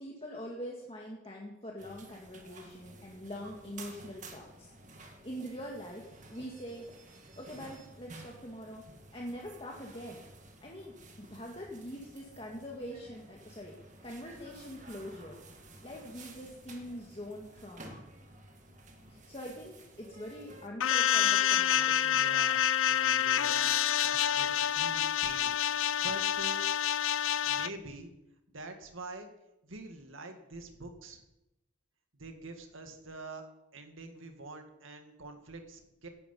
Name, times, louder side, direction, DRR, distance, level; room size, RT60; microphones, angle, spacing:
voice 1, 0.0-6.8 7.4-8.8 9.1-10.2 10.6-15.4 15.8-18.0 19.1-22.2, equal, 25° left, -2 dB, 1.9 m, -44 dB
sound 1, 1.8-20.7, right 2 dB, 35° right, 2.0 m, -53 dB
sound 2, 20.8-27.7, left 10 dB, 85° left, 0.6 m, -28 dB
voice 2, 22.1-23.7 24.0-25.5 25.8-26.7 27.5-28.1 28.5-29.3 29.6-31.2 32.1-33.5 33.7-36.1, right 2 dB, 75° right, 5 dB, 2.1 m, -46 dB
17.5 x 12.0 x 5.5 m, 0.93 s
head